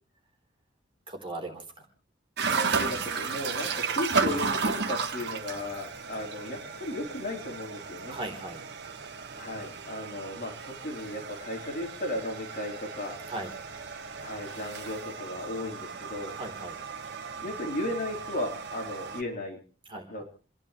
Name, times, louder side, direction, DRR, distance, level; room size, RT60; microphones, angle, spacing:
voice 1, 1.1-1.6 8.1-8.6 13.3-13.5 16.4-16.8 19.9-20.2, right 2 dB, 25° right, 1 dB, 3.6 m, -38 dB
sound 1, 2.4-19.2, right 5 dB, 60° right, 1.3 m, -34 dB
voice 2, 2.5-8.2 9.4-13.2 14.2-16.4 17.4-19.6 20.1-20.2, left 1 dB, 45° left, 1 dB, 3.5 m, -35 dB
29.5 x 10.5 x 3.1 m, 0.38 s
head